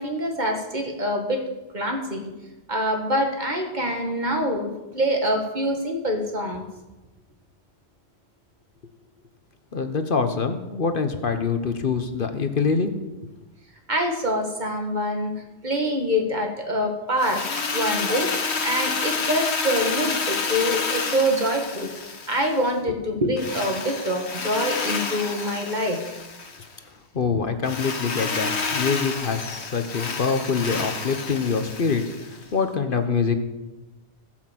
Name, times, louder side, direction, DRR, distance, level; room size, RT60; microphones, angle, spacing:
voice 1, 0.0-1.4 1.7-2.3 2.7-6.6 13.9-15.3 15.6-21.9 22.3-26.2, equal, 45° right, 3 dB, 1.9 m, -25 dB
voice 2, 9.7-12.9 13.2-13.3 27.1-33.4, left 5 dB, 55° left, 8 dB, 1.1 m, -25 dB
Drill, 17.2-22.7 23.4-26.7 27.6-32.4, left 4 dB, 80° left, 1.5 m, -29 dB
16.5 x 6.1 x 7.5 m, 1.1 s
omnidirectional pair, 1.1 m